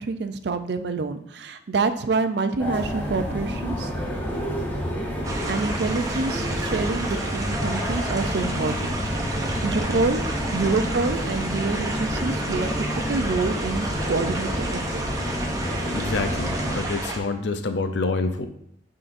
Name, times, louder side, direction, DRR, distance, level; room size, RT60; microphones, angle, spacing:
voice 1, 0.0-3.9 5.5-9.0 9.6-10.2 10.5-15.1, right 3 dB, 60° right, 9 dB, 0.4 m, -27 dB
sound 1, 2.6-16.8, equal, 10° left, 0.9 m, -29 dB
sound 2, 5.2-17.2, right 1 dB, 20° right, 0.6 m, -31 dB
voice 2, 15.9-18.5, left 3 dB, 65° left, 8 dB, 0.5 m, -27 dB
9.8 x 3.8 x 2.6 m, 0.70 s
head